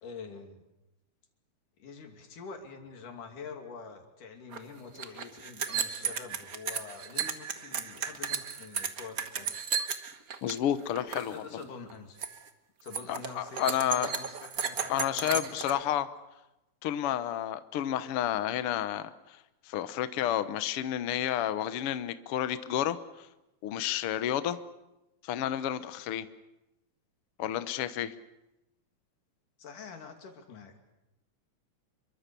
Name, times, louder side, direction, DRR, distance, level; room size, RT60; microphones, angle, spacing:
voice 1, 0.0-0.6 1.8-9.6 11.3-12.2 12.8-16.0 29.6-30.7, left 5 dB, 90° left, 4 dB, 4.2 m, -46 dB
sound 1, 4.5-4.6 4.8-10.6 10.9-11.3 11.6-11.9 12.2-12.5 12.9-15.7, right 6 dB, 50° right, 1.1 m, -34 dB
voice 2, 10.4-11.3 13.1-14.2 14.9-16.1 16.8-19.4 19.7-23.3 23.6-24.6 25.2-26.3 27.4-28.1, left 11 dB, 60° left, 12 dB, 1.6 m, -31 dB
27.0 x 23.5 x 6.9 m, 0.96 s
omnidirectional pair, 3.5 m